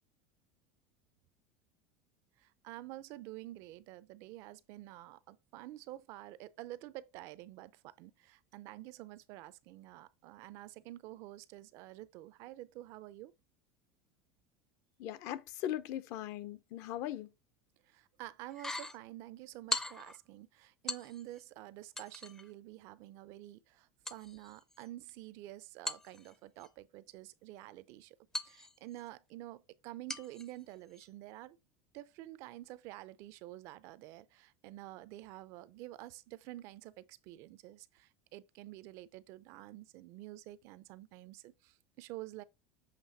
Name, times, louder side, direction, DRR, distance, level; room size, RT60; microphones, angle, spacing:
voice 1, 2.4-13.3 17.9-28.2 28.4-31.6 31.9-42.4, right 16 dB, 55° right, 0.5 m, -49 dB
voice 2, 15.0-17.3, left 12 dB, 55° left, 0.7 m, -39 dB
sound 1, 18.5-19.0 19.7-20.2 20.9-21.5 22.0-22.5 24.1-25.1 25.9-26.7 28.3-29.1 30.1-30.5 30.9-31.1, left 2 dB, 10° left, 0.5 m, -41 dB
7.4 x 3.3 x 4.0 m
cardioid pair, 155°, 6 cm